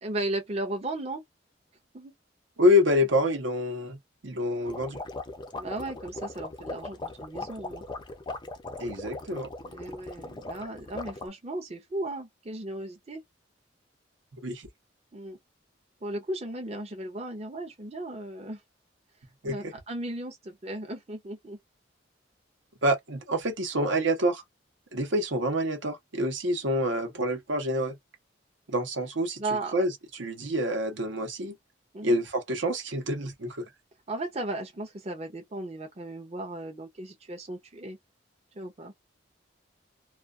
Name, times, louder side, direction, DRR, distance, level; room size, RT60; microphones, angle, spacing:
voice 1, 0.0-1.2 1.9-2.1 5.5-7.8 9.6-13.2 15.1-15.4 16.0-18.6 19.4-21.6 29.4-29.7 31.9-32.2 34.1-38.0 38.6-38.9, right 2 dB, 30° right, 0.6 m, -36 dB
voice 2, 2.6-4.0 4.2-5.0 8.8-9.5 14.4-14.7 19.4-19.6 22.8-24.4 24.9-28.0 28.7-29.4 29.7-31.6 32.0-33.7, left 1 dB, 75° right, 0.8 m, -27 dB
sound 1, 4.7-11.3, left 2 dB, 25° left, 0.4 m, -39 dB
2.3 x 2.3 x 2.4 m
head